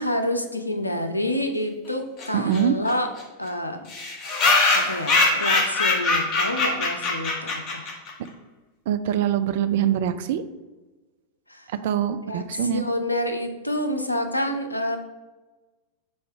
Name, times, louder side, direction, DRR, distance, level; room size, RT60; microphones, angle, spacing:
voice 1, 0.0-3.1 3.4-3.8 4.7-7.9 11.5-11.7 12.3-15.0, left 1 dB, 85° left, 6 dB, 0.6 m, -28 dB
sound 1, 2.2-2.3 2.5-2.6 2.9-3.0 3.2-3.3 3.9-8.1, left 3 dB, 35° left, 1.1 m, -22 dB
voice 2, 2.3-2.7 8.9-10.4 11.8-12.8, right 9 dB, 55° right, 11 dB, 0.4 m, -23 dB
5.5 x 3.8 x 4.5 m, 1.2 s
figure-of-eight pair, 90°, 0 cm